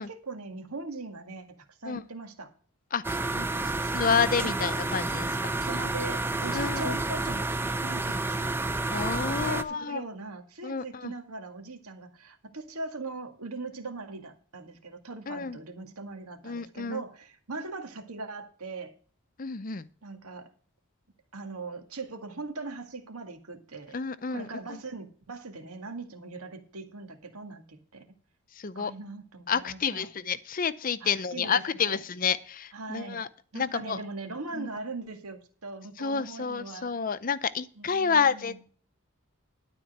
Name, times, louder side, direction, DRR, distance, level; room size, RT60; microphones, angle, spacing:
voice 1, 0.0-2.5 3.3-3.8 4.4-4.6 5.6-8.6 9.4-18.9 20.0-20.5 21.3-24.0 24.3-28.0 28.8-30.1 31.0-32.0 32.7-33.2 33.5-37.0 37.8-38.6, right 3 dB, 90° right, 5 dB, 2.1 m, -40 dB
voice 2, 2.9-3.2 3.9-5.4 6.5-7.0 8.9-10.0 10.6-11.1 15.3-15.6 16.4-17.0 19.4-19.9 23.9-24.8 28.5-28.9 29.5-33.3 33.5-34.0 34.5-34.7 36.0-38.6, left 6 dB, 40° left, 15 dB, 0.6 m, -29 dB
sound 1, 3.0-9.6, right 2 dB, 10° right, 0.5 m, -30 dB
12.5 x 4.4 x 7.9 m, 0.44 s
head